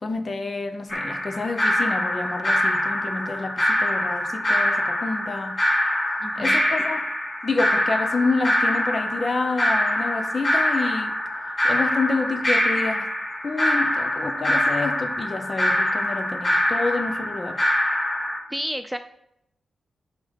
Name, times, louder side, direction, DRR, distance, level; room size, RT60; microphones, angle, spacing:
voice 1, 0.0-5.6 6.4-7.1 7.4-11.1 11.6-13.1 13.4-17.6, left 3 dB, 35° left, 0.6 m, -28 dB
sound 1, 0.9-18.4, left 1 dB, 20° left, 1.1 m, -24 dB
voice 2, 6.2-6.6 18.5-19.0, equal, 5° right, 0.3 m, -30 dB
6.1 x 5.1 x 5.1 m
cardioid pair, 100°, 0 cm